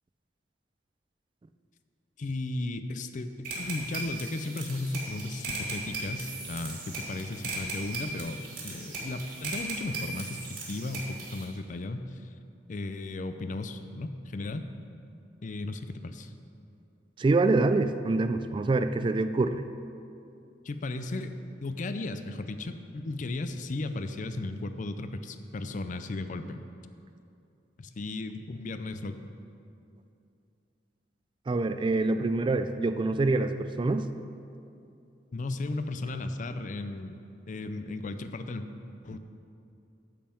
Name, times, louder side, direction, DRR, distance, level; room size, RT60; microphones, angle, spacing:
voice 1, 2.2-12.3 12.7-14.7 15.4-16.3 20.6-21.3 21.6-26.6 27.8-29.2 35.3-37.2 37.5-38.7 39.0-39.2, left 2 dB, 45° left, 9 dB, 0.5 m, -35 dB
sound 1, 3.4-11.4, right 3 dB, 50° right, 2.2 m, -38 dB
voice 2, 17.2-19.6 31.5-34.1, right 3 dB, 25° right, 10 dB, 0.3 m, -25 dB
8.5 x 5.6 x 7.6 m, 2.6 s
head